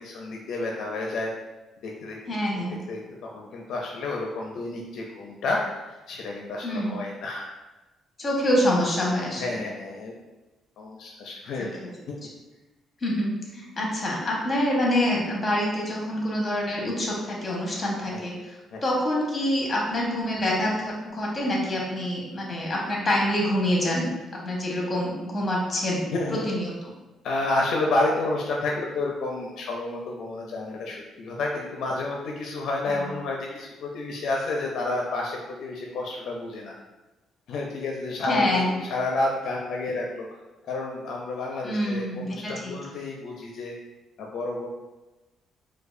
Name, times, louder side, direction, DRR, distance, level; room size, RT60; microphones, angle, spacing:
voice 1, 0.0-1.3 1.8-2.2 2.5-2.6 2.9-7.5 9.4-10.1 10.8-11.7 12.1-12.2 18.1-18.2 18.7-18.8 26.1-26.4 27.2-36.7 37.5-40.3 40.6-43.7 44.2-44.7, left 2 dB, 70° left, -1 dB, 0.4 m, -30 dB
voice 2, 2.3-2.8 6.6-6.9 8.2-9.6 11.6-11.9 13.0-18.6 18.8-24.1 24.4-26.0 26.3-26.9 38.2-38.7 41.6-42.7, left 1 dB, 25° left, -2 dB, 1.0 m, -26 dB
4.6 x 2.3 x 2.5 m, 1.1 s
cardioid pair, 105°, 0 cm